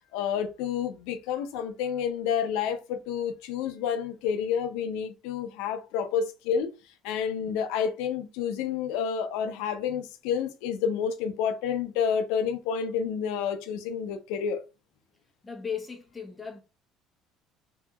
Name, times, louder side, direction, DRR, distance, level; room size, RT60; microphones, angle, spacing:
voice 1, 0.1-6.7 7.0-14.6, left 7 dB, 85° left, 0.4 m, -29 dB
voice 2, 15.4-16.6, left 6 dB, 10° left, 0.6 m, -36 dB
2.7 x 2.6 x 2.3 m
cardioid pair, 180°, 0 cm